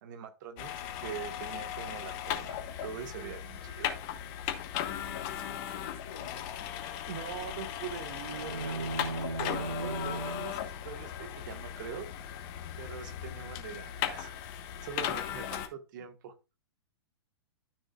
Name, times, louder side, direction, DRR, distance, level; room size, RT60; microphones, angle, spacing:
voice 1, 0.0-4.0 7.1-12.1 12.8-14.3 14.8-16.3, right 8 dB, 45° right, 8 dB, 1.5 m, -43 dB
sound 1, 0.6-15.7, left 10 dB, 35° left, 1.3 m, -37 dB
voice 2, 4.8-6.5 15.4-15.6, left 7 dB, 55° left, 0 dB, 1.7 m, -50 dB
sound 2, 8.3-10.6, right 3 dB, 90° right, 1.1 m, -37 dB
12.5 x 6.3 x 2.4 m, 0.28 s
figure-of-eight pair, 110°, 14 cm